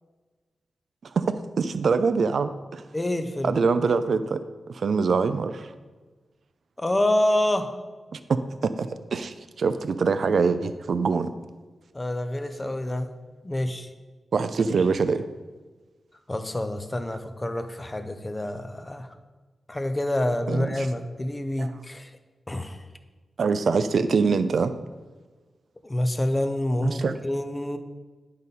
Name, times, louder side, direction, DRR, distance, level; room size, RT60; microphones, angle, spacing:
voice 1, 1.6-2.8 3.4-4.4 4.7-5.7 8.1-11.3 14.3-15.3 20.5-20.9 21.6-21.7 23.4-24.7 26.8-27.2, right 5 dB, 60° right, 11 dB, 0.4 m, -24 dB
voice 2, 2.9-3.5 6.8-7.8 11.9-13.2 13.4-13.9 16.3-19.1 19.7-22.1 22.5-22.8 25.8-27.8, left 1 dB, 15° left, 8 dB, 0.6 m, -27 dB
10.5 x 5.3 x 4.1 m, 1.3 s
wide cardioid pair, 145°, 0 cm